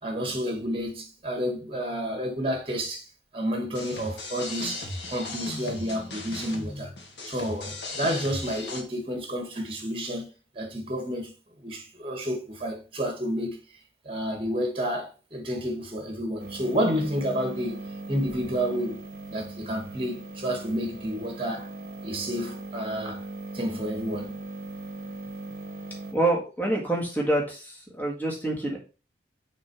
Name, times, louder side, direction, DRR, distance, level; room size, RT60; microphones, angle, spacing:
voice 1, 0.0-3.1 3.3-6.9 7.3-11.3 11.6-13.6 14.0-19.0 19.3-21.7 22.0-23.2 23.5-24.3, equal, 30° right, 1.7 m, -30 dB
sound 1, 3.7-8.8, left 2 dB, 85° left, 1.7 m, -37 dB
sound 2, 16.4-26.1, right 2 dB, 50° right, 1.1 m, -39 dB
voice 2, 26.1-28.8, right 2 dB, 10° left, 1.8 m, -26 dB
6.1 x 3.7 x 4.8 m
head